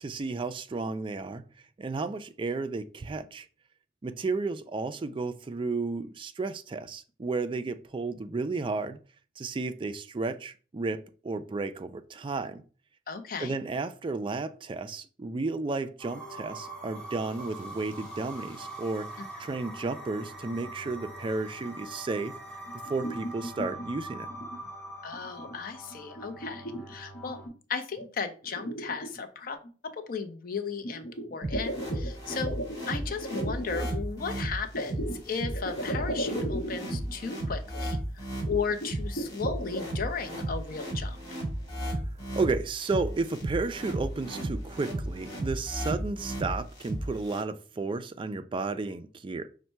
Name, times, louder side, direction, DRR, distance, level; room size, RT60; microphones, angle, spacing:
voice 1, 0.0-1.4 1.8-3.5 4.0-9.0 9.4-12.6 13.4-22.4 22.7-24.3 42.4-49.5, right 3 dB, 25° right, 0.3 m, -33 dB
voice 2, 13.1-13.5 25.0-27.4 27.7-32.6 32.9-41.2, left 5 dB, 50° left, 0.5 m, -35 dB
sound 1, 16.0-27.5, right 1 dB, 5° left, 0.9 m, -43 dB
sound 2, 22.7-23.9 24.3-24.7 25.1-25.6 25.9-27.5 28.0-28.1 28.4-29.7 30.8-33.9 34.7-37.2 37.5-37.6 37.8-37.9 38.5-39.9, right 1 dB, 70° left, 0.9 m, -36 dB
sound 3, 31.4-47.4, right 1 dB, 20° left, 2.1 m, -34 dB
5.3 x 2.1 x 4.4 m
head